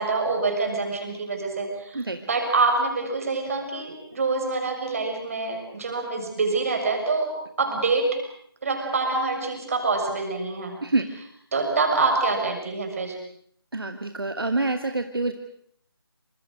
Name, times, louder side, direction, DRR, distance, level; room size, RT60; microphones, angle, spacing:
voice 1, 0.0-7.3 7.6-8.2 8.6-10.8 11.5-13.1, right 3 dB, 35° right, 4 dB, 6.3 m, -26 dB
voice 2, 13.7-15.3, right 2 dB, 65° right, 6 dB, 2.1 m, -26 dB
27.5 x 26.0 x 6.5 m, 0.66 s
figure-of-eight pair, 160°, 13 cm